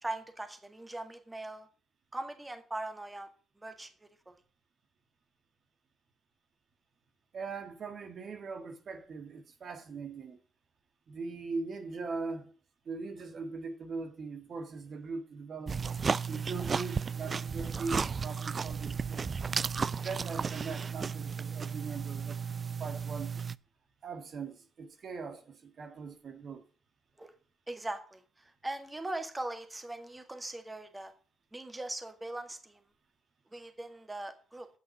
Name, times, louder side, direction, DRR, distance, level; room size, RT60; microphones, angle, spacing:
voice 1, 0.0-1.7 2.1-3.3 3.6-4.4 27.2-27.3 27.7-31.1 31.5-32.8 33.5-34.7, right 2 dB, 20° right, 1.9 m, -40 dB
voice 2, 7.3-10.4 11.1-12.5 12.9-15.8 16.3-19.3 20.0-23.4 24.0-26.6, right 4 dB, 60° right, 1.6 m, -40 dB
sound 1, 15.7-23.6, right 5 dB, 45° right, 0.4 m, -34 dB
8.3 x 6.3 x 7.4 m
supercardioid pair, 60°, 0 cm